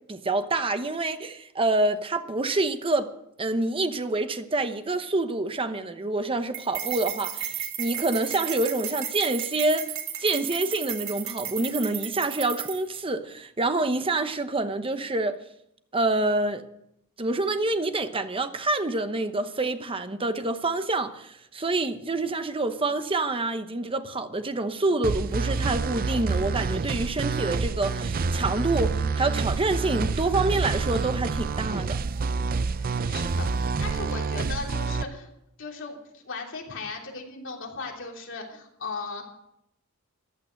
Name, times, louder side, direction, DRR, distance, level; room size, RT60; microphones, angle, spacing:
voice 1, 0.1-3.1 3.4-9.9 10.2-15.4 15.9-16.6 17.2-32.0, right 2 dB, 25° right, 0.9 m, -27 dB
sound 1, 6.5-13.0, right 10 dB, 65° right, 2.4 m, -34 dB
sound 2, 25.0-35.0, right 4 dB, 40° right, 0.5 m, -28 dB
voice 2, 32.6-35.3 35.6-39.3, left 3 dB, 60° left, 3.2 m, -37 dB
15.0 x 11.5 x 6.5 m
head